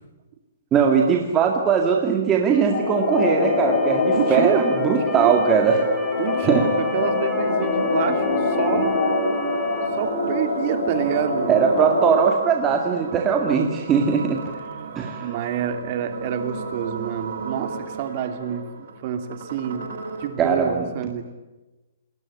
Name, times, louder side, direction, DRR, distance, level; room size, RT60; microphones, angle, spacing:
voice 1, 0.7-5.8 6.4-6.7 11.5-14.4 15.0-15.3 20.4-20.8, right 6 dB, 15° right, 2 dB, 2.1 m, -20 dB
Motor vehicle (road) / Siren, 2.4-9.9, left 3 dB, 5° left, 2.5 m, -38 dB
sound 1, 2.7-12.2, left 3 dB, 55° left, 5.7 m, -24 dB
voice 2, 4.1-5.4 6.2-8.9 10.0-11.5 14.6-21.3, right 9 dB, 30° right, 8 dB, 2.9 m, -28 dB
sound 2, 4.3-20.3, right 4 dB, 50° right, 7.5 m, -36 dB
28.5 x 21.0 x 9.9 m, 1.1 s
hypercardioid pair, 175°, 0 cm